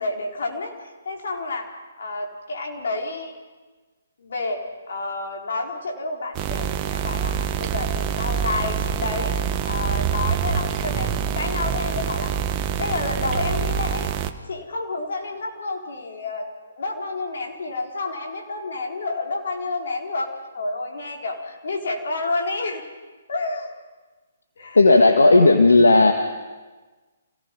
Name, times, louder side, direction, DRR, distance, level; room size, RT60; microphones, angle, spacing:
voice 1, 0.0-1.7 2.0-3.4 4.2-12.3 12.8-14.1 14.5-22.8 23.3-23.7 24.6-24.8, left 3 dB, 65° left, 1 dB, 4.4 m, -29 dB
sound 1, 6.3-14.3, right 8 dB, 25° right, 1.3 m, -25 dB
voice 2, 24.8-26.1, left 2 dB, 85° left, 4 dB, 1.7 m, -13 dB
28.0 x 17.5 x 5.5 m, 1.3 s
hypercardioid pair, 135°, 0 cm